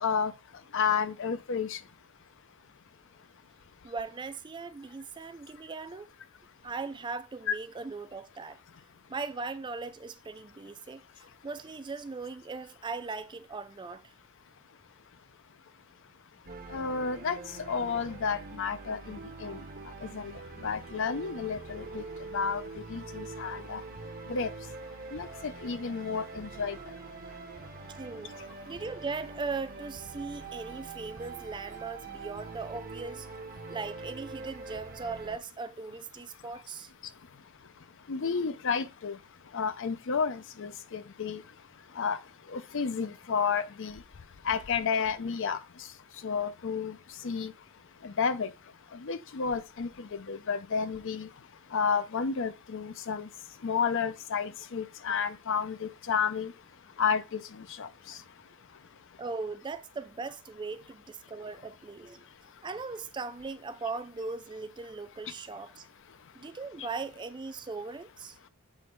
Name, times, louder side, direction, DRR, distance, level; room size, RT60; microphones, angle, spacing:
voice 1, 0.7-1.8 7.5-7.6 16.7-17.4 17.7-19.6 20.1-20.3 20.6-22.0 22.3-22.6 22.9-23.8 24.3-24.5 25.1-26.8 38.1-39.2 39.5-41.4 42.0-42.2 42.5-43.9 44.5-45.6 46.2-47.0 47.2-47.5 48.0-48.5 49.0-51.3 51.7-53.3 53.6-56.5 57.0-57.4 57.8-57.9, left 6 dB, 60° left, 0.5 m, -31 dB
voice 2, 3.8-6.1 6.6-8.6 9.1-14.1 28.0-28.4 28.6-33.3 33.7-36.9 59.2-62.2 62.6-65.9 66.3-68.4, right 4 dB, 20° right, 0.3 m, -39 dB
sound 1, 16.5-35.4, right 3 dB, 40° right, 0.7 m, -44 dB
7.6 x 3.1 x 4.6 m
head